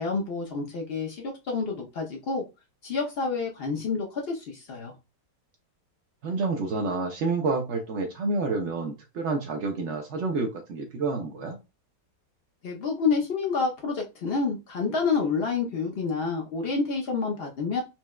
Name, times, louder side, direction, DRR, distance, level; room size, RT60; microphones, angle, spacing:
voice 1, 0.0-2.4 2.8-4.9 12.6-17.8, left 4 dB, 85° left, 0 dB, 0.5 m, -28 dB
voice 2, 6.2-11.6, right 3 dB, 80° right, 2 dB, 0.6 m, -29 dB
4.3 x 2.1 x 2.2 m, 0.26 s
omnidirectional pair, 1.9 m